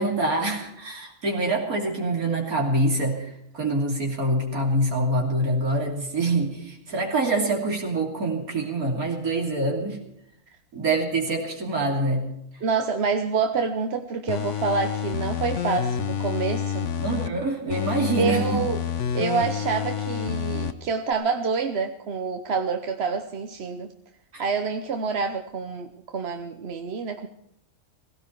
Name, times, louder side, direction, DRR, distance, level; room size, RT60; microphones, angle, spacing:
voice 1, 0.0-10.0 10.7-12.3 17.0-18.6 24.3-24.4, right 2 dB, 80° right, 1 dB, 3.5 m, -25 dB
voice 2, 12.6-16.9 18.1-18.8 19.1-23.9 24.4-27.3, right 5 dB, 50° right, 6 dB, 1.1 m, -27 dB
sound 1, 14.3-17.3 17.7-20.7 21.1-21.2, left 8 dB, 60° left, 1.2 m, -28 dB
17.0 x 17.0 x 4.6 m, 0.77 s
omnidirectional pair, 1.5 m